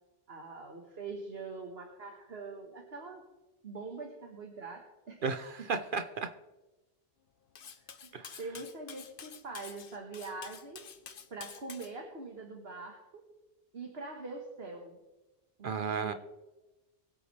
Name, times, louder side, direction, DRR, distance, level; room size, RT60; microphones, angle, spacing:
voice 1, 0.3-3.2 3.6-5.2 8.0-8.1 8.4-10.8 11.3-13.2 13.7-15.0 15.6-16.1, right 3 dB, 75° right, 1 dB, 1.8 m, -43 dB
voice 2, 5.2-6.3 8.1-8.4 15.6-16.1, right 5 dB, 60° right, 9 dB, 0.8 m, -34 dB
Cutlery silverware, 7.5-11.9, left 7 dB, 60° left, 1.0 m, -49 dB
23.5 x 8.3 x 3.3 m, 1.1 s
omnidirectional pair, 1.0 m